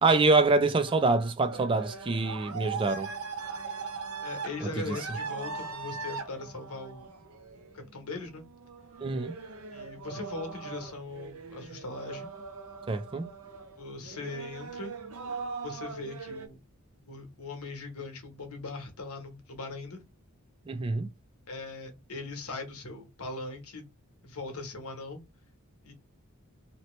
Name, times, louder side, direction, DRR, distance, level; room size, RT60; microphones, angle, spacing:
voice 1, 0.0-3.1 4.6-5.0 9.0-9.4 12.9-13.3 20.7-21.1, right 3 dB, 25° right, 0.3 m, -25 dB
sound 1, 0.9-16.5, right 5 dB, 75° right, 0.6 m, -40 dB
voice 2, 4.2-7.1 7.7-8.4 9.7-12.3 13.8-14.9 15.6-16.6 17.0-20.0 21.5-23.9 24.2-25.2 25.8-25.9, left 3 dB, 80° left, 1.1 m, -40 dB
2.9 x 2.8 x 3.1 m
head